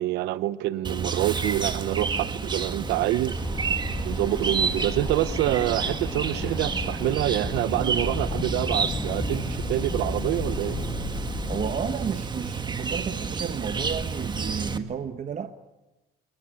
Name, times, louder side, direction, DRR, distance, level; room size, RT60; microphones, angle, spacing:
voice 1, 0.0-3.4 4.0-10.8, right 15 dB, 85° right, 17 dB, 0.8 m, -26 dB
Chirp tweet, 0.8-14.8, right 5 dB, 25° right, 1.8 m, -30 dB
sound 1, 3.3-11.9, left 3 dB, 25° left, 6.1 m, -34 dB
voice 2, 11.5-15.5, right 7 dB, 45° right, 9 dB, 1.2 m, -32 dB
29.0 x 20.5 x 9.6 m, 1.1 s
cardioid pair, 110°, 17 cm